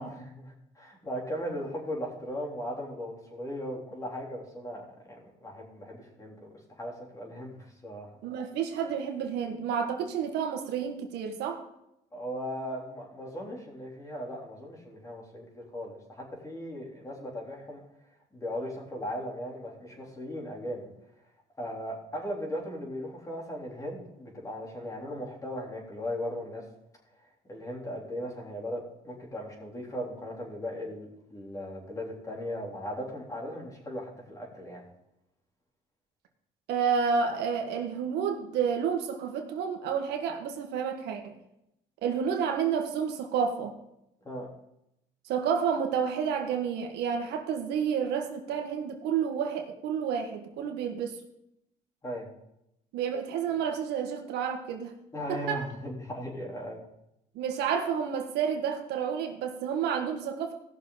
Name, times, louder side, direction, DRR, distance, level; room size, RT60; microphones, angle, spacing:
voice 1, 0.0-8.1 12.1-17.8 18.3-20.9 21.6-26.6 27.5-34.8 44.2-44.5 52.0-52.3 55.1-56.8, equal, 20° left, -2 dB, 3.4 m, -38 dB
voice 2, 8.2-11.6 36.7-41.3 42.0-43.7 45.2-51.2 52.9-54.9 55.3-55.6 57.3-60.5, right 7 dB, 85° right, 4 dB, 1.5 m, -30 dB
17.5 x 6.5 x 3.9 m, 0.82 s
cardioid pair, 110°, 17 cm